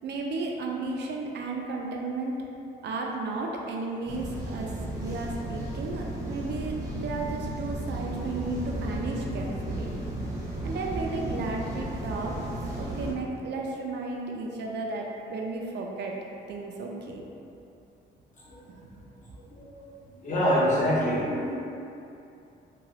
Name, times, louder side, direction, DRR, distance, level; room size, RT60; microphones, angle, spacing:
voice 1, 0.0-2.4 2.8-9.9 10.6-16.2 16.5-17.2 18.7-18.9, right 3 dB, 60° right, 0 dB, 0.4 m, -34 dB
sound 1, 4.1-13.1, right 1 dB, 15° right, 0.7 m, -34 dB
voice 2, 20.2-21.5, equal, 40° left, -6 dB, 0.8 m, -25 dB
3.0 x 2.2 x 2.8 m, 2.7 s
cardioid pair, 90°, 20 cm